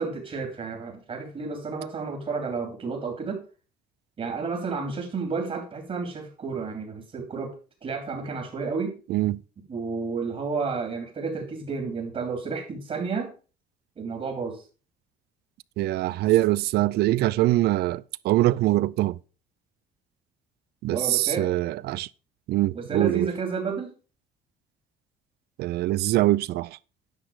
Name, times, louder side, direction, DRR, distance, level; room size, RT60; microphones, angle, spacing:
voice 1, 0.0-3.4 4.2-7.5 7.8-8.9 9.7-13.3 14.0-14.6 20.9-21.5 22.7-23.9, right 4 dB, 40° right, 2.9 m, -31 dB
voice 2, 15.8-19.2 20.8-22.1 22.5-23.3 25.6-26.8, right 16 dB, 70° right, 0.4 m, -23 dB
10.0 x 6.1 x 4.8 m
cardioid pair, 110°, 17 cm